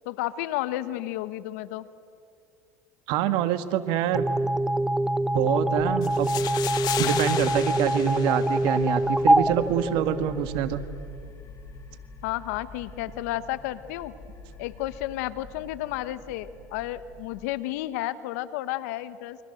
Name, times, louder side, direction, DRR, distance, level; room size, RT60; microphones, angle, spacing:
voice 1, 0.0-1.8 12.2-14.1 14.6-19.4, left 15 dB, 75° left, 14 dB, 1.3 m, -32 dB
voice 2, 3.1-4.4 5.3-6.3 7.0-10.8, right 10 dB, 65° right, 11 dB, 1.8 m, -26 dB
sound 1, 4.1-10.6, right 1 dB, 5° right, 1.0 m, -24 dB
sound 2, 5.7-17.5, left 1 dB, 30° left, 6.2 m, -46 dB
sound 3, 6.0-9.0, left 12 dB, 50° left, 1.4 m, -34 dB
29.0 x 24.0 x 7.9 m, 2.4 s
supercardioid pair, 90°, 8 cm